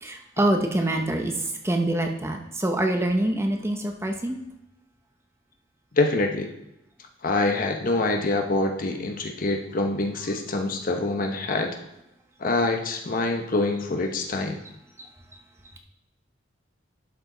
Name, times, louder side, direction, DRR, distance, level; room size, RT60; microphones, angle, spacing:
voice 1, 0.0-1.3 1.6-4.4, right 1 dB, 15° right, 3 dB, 0.8 m, -25 dB
voice 2, 5.9-6.5 7.2-11.8 12.4-14.6, left 2 dB, 50° left, 4 dB, 0.9 m, -25 dB
11.5 x 5.1 x 3.9 m, 0.86 s
head